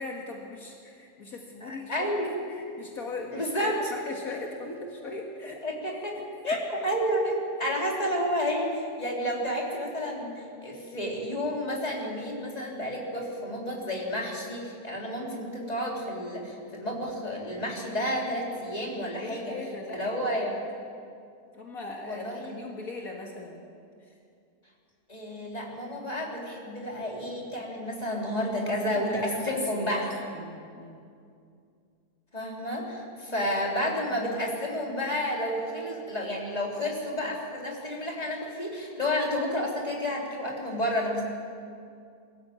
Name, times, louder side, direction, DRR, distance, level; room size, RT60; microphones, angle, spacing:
voice 1, 0.0-2.1 2.5-5.6 19.1-20.1 20.4-20.6 21.5-23.6 24.0-24.1 28.7-31.1, left 3 dB, 65° left, 0 dB, 2.2 m, -40 dB
voice 2, 1.6-2.3 3.3-3.9 5.4-19.5 19.9-20.6 22.0-22.6 25.1-30.1 32.3-41.2, equal, 25° left, -2 dB, 3.6 m, -31 dB
23.0 x 14.0 x 8.8 m, 2.4 s
omnidirectional pair, 1.7 m